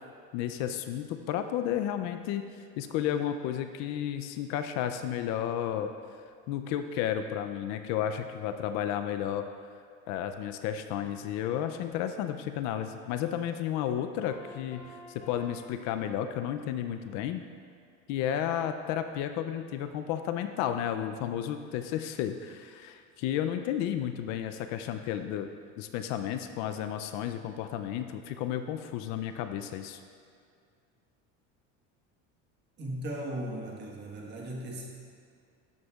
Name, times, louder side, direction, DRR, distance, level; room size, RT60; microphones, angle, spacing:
voice 1, 0.3-2.5 2.8-5.9 6.5-9.4 10.1-17.4 18.1-25.5 25.8-30.0, left 10 dB, 60° left, 8 dB, 0.5 m, -32 dB
Piano, 14.2-16.8, left 1 dB, 25° left, 1.0 m, -51 dB
voice 2, 32.8-34.9, right 1 dB, 35° right, -1 dB, 1.4 m, -37 dB
12.0 x 7.9 x 2.4 m, 2.3 s
cardioid pair, 165°, 32 cm